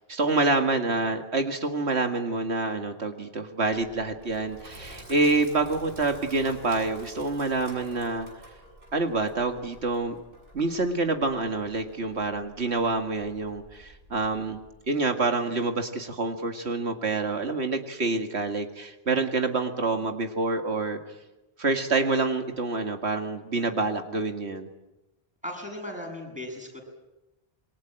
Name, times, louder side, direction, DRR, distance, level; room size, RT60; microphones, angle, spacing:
voice 1, 0.0-8.3 8.9-10.2 10.5-14.6 14.9-21.0 21.6-24.7, right 3 dB, 85° right, 5 dB, 2.3 m, -27 dB
Sink (filling or washing), 3.7-14.7, equal, 55° right, 7.8 m, -48 dB
voice 2, 25.4-26.8, left 1 dB, 5° right, 1 dB, 7.6 m, -37 dB
27.5 x 23.0 x 8.9 m, 0.99 s
omnidirectional pair, 1.1 m